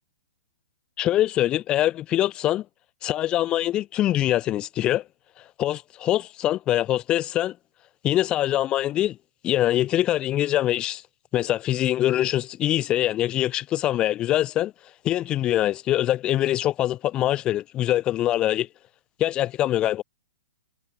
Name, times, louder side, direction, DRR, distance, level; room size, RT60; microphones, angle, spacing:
voice 1, 1.0-2.6 3.0-5.0 5.6-7.5 8.0-9.2 9.4-11.0 11.3-14.7 15.0-18.7 19.2-20.0, left 13 dB, 25° left, 0.9 m, -23 dB
hypercardioid pair, 130°, 4 cm